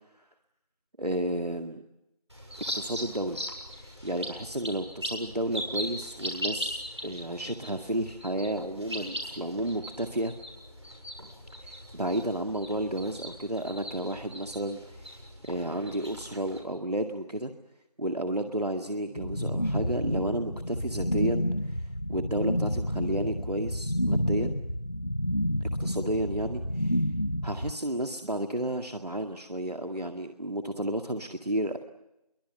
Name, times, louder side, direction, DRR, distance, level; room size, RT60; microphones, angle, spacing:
voice 1, 1.0-1.8 2.7-3.4 3.7-10.3 11.6-15.2 15.5-17.5 18.0-24.6 25.8-27.0 27.4-31.8, right 1 dB, 75° right, 5 dB, 2.0 m, -32 dB
sound 1, 2.3-16.6, equal, 45° right, 6.9 m, -39 dB
sound 2, 19.1-27.7, equal, 45° left, 1.1 m, -29 dB
26.0 x 23.5 x 7.9 m, 0.88 s
figure-of-eight pair, 180°, 20 cm